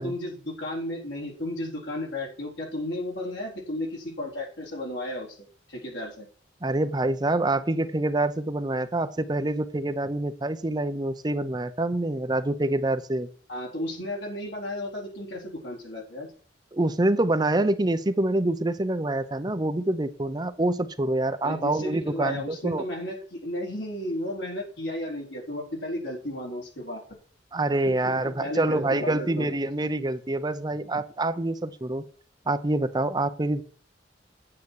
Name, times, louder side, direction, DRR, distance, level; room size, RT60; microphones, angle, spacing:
voice 1, 0.0-6.3 13.5-16.3 21.4-27.0 27.9-28.0 28.4-29.5, left 1 dB, 80° left, 0 dB, 3.9 m, -34 dB
voice 2, 6.6-13.3 16.7-22.8 27.5-32.0 32.5-33.6, right 2 dB, 20° right, 11 dB, 0.6 m, -26 dB
8.7 x 8.3 x 4.6 m, 0.42 s
head